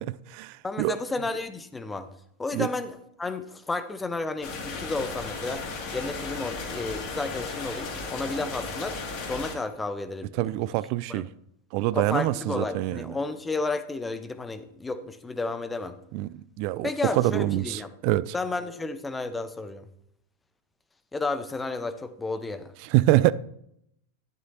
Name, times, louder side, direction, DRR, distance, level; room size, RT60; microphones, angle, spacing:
voice 1, 0.0-1.0 2.5-2.7 10.4-11.3 11.7-13.1 16.1-16.3 16.6-18.3 22.8-23.3, right 16 dB, 45° right, 0.4 m, -25 dB
voice 2, 0.6-2.1 2.4-5.6 5.9-9.0 9.3-10.7 11.1-11.3 11.9-16.0 16.8-17.9 18.3-19.9 21.1-22.7, left 3 dB, 10° left, 0.8 m, -32 dB
sound 1, 4.4-9.5, left 3 dB, 40° left, 2.3 m, -35 dB
12.0 x 11.0 x 2.8 m
figure-of-eight pair, 90°, 0 cm